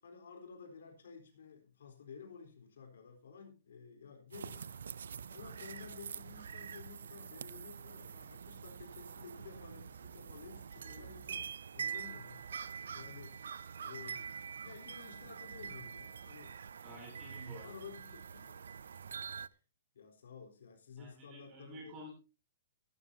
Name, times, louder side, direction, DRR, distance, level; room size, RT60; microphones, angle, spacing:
voice 1, 0.0-4.7 5.3-12.4 12.9-13.4 13.8-14.3 14.6-16.6 17.6-18.6 19.9-22.0, left 6 dB, 70° left, 3 dB, 3.9 m, -53 dB
sound 1, 4.3-19.5, right 7 dB, 80° right, 0.5 m, -45 dB
voice 2, 16.8-17.8 21.0-22.1, right 1 dB, 20° right, -1 dB, 7.1 m, -50 dB
16.0 x 12.5 x 2.8 m, 0.30 s
hypercardioid pair, 170°, 0 cm